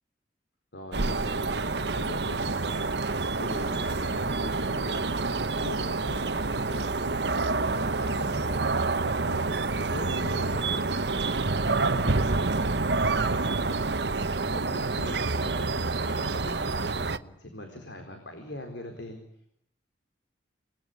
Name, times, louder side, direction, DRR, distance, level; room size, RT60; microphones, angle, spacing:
voice 1, 0.7-1.6 2.0-2.9 3.3-5.2 5.6-8.7 9.2-9.6 9.9-12.5 13.3-13.8 14.4-15.7 16.1-19.2, left 1 dB, 80° left, 4 dB, 4.3 m, -42 dB
sound 1, 0.9-17.2, right 3 dB, 70° right, 1.0 m, -28 dB
28.0 x 19.5 x 9.2 m, 0.70 s
head